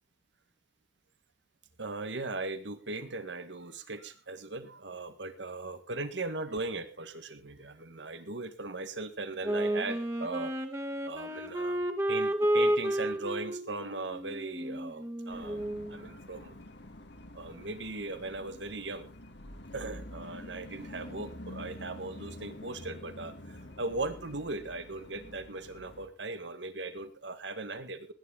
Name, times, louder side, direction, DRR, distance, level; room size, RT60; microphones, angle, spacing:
voice 1, 1.8-10.5 11.0-11.8 12.1-16.6 17.3-19.1 19.7-28.1, right 3 dB, 80° right, 10 dB, 1.8 m, -38 dB
Wind instrument woodwind instrument, 9.4-16.0, right 1 dB, 15° right, 1.8 m, -31 dB
sound 1, 15.3-26.1, left 1 dB, 75° left, 1.9 m, -47 dB
20.0 x 10.0 x 3.8 m, 0.30 s
head